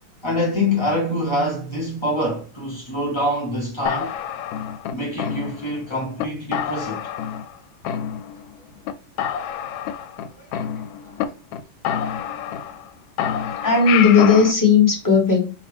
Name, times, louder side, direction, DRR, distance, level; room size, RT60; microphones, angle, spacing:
voice 1, 0.2-4.1 4.9-7.1, left 1 dB, 45° left, 0.3 m, -25 dB
sound 1, 3.9-5.8 6.2-6.3 6.5-7.6 7.9-8.6 8.9-9.0 9.2-11.2 11.5-11.6 11.9-12.9 13.2-14.5, left 9 dB, 90° left, 1.3 m, -27 dB
voice 2, 13.6-15.5, left 5 dB, 15° left, 1.0 m, -16 dB
4.9 x 2.7 x 3.4 m
omnidirectional pair, 2.1 m